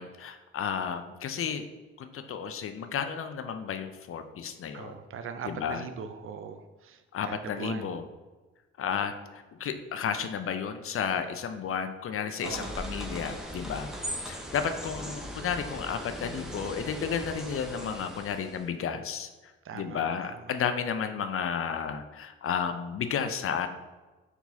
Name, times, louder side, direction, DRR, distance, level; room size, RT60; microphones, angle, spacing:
voice 1, 0.0-1.7 2.0-5.0 5.4-5.8 7.1-8.0 8.8-13.9 14.3-23.7, left 7 dB, 45° left, 9 dB, 0.5 m, -32 dB
voice 2, 4.7-7.0 7.3-7.9 12.4-12.8 19.6-20.4, right 6 dB, 45° right, 8 dB, 0.5 m, -40 dB
sound 1, 12.4-18.7, equal, ahead, 0.8 m, -39 dB
4.5 x 3.9 x 2.7 m, 1.2 s
hypercardioid pair, 40°, 30 cm